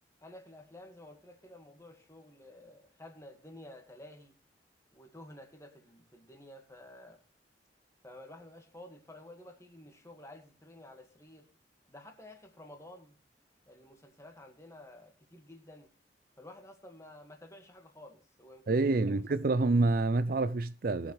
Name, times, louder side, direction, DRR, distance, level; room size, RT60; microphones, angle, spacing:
voice 1, 0.2-4.3 4.9-7.2 8.0-11.5 11.9-13.2 13.7-15.9 16.4-19.4, left 1 dB, 15° left, 1.8 m, -52 dB
voice 2, 18.7-21.1, right 3 dB, 50° right, 0.4 m, -27 dB
20.0 x 7.3 x 3.3 m
head